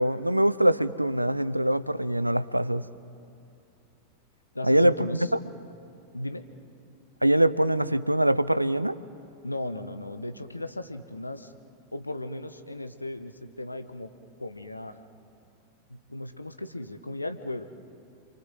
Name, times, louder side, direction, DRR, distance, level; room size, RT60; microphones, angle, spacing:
voice 1, 0.0-2.8 4.6-4.9 7.2-9.0, right 1 dB, 85° right, 16 dB, 0.6 m, -23 dB
voice 2, 4.5-5.3 6.1-6.4 9.4-11.5 11.9-14.1 14.4-15.0 15.9-17.6, left 1 dB, 85° left, 9 dB, 1.2 m, -36 dB
28.5 x 24.0 x 7.8 m, 2.5 s
figure-of-eight pair, 90°, 0 cm